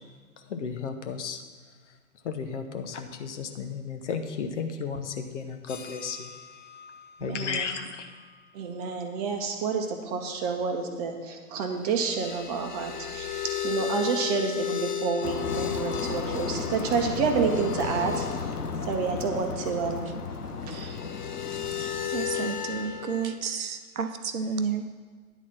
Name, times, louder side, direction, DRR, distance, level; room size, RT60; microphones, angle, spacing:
voice 1, 0.5-1.4 2.2-6.3 7.2-8.1, left 6 dB, 50° left, 6 dB, 0.9 m, -33 dB
sound 1, 5.7-7.8 8.2-8.3 11.9-18.7 20.6-23.4, left 9 dB, 35° left, 0.4 m, -35 dB
voice 2, 7.2-7.7 8.5-18.3 18.9-20.1, right 5 dB, 25° right, 4 dB, 0.9 m, -29 dB
sound 2, 15.2-23.2, left 4 dB, 80° left, 0.9 m, -34 dB
voice 3, 22.1-24.8, right 6 dB, 65° right, 8 dB, 0.8 m, -31 dB
10.0 x 4.1 x 7.4 m, 1.5 s
figure-of-eight pair, 115°, 45 cm